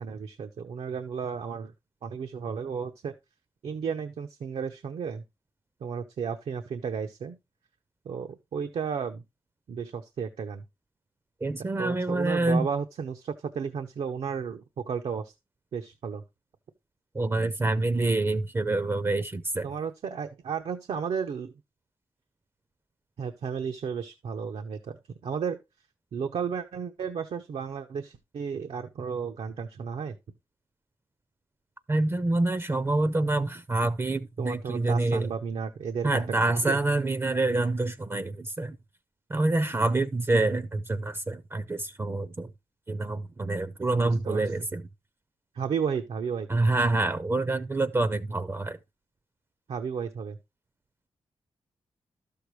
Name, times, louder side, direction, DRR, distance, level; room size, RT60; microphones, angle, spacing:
voice 1, 0.0-1.7 2.0-3.1 3.6-5.2 5.8-7.4 8.0-9.2 9.7-10.6 11.8-15.3 15.7-16.2 19.6-21.5 23.2-25.0 25.2-25.6 26.1-30.2 34.4-36.8 43.9-44.4 45.5-46.5 49.7-50.4, right 6 dB, 80° right, 0.8 m, -33 dB
voice 2, 11.4-12.7 17.1-19.7 31.9-35.3 36.0-38.8 39.3-42.5 42.9-44.9 46.5-48.8, right 2 dB, 25° right, 0.5 m, -26 dB
12.5 x 6.6 x 3.2 m
wide cardioid pair, 125°, 10 cm